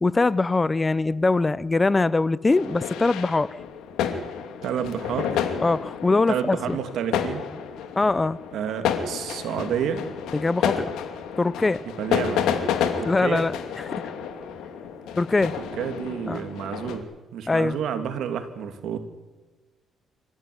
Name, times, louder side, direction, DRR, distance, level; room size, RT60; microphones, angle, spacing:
voice 1, 0.0-3.5 5.6-6.8 8.0-8.4 10.3-10.9 11.4-11.8 13.0-13.8 15.2-15.5 16.3-16.4 17.5-17.8, left 3 dB, 25° left, 0.7 m, -22 dB
sound 1, 2.5-17.0, left 8 dB, 90° left, 2.7 m, -30 dB
voice 2, 4.6-5.5 6.3-7.5 8.5-10.1 12.0-12.5 13.0-13.5 15.6-19.0, right 8 dB, 75° right, 2.8 m, -30 dB
26.0 x 15.0 x 9.7 m
cardioid pair, 90°, 0 cm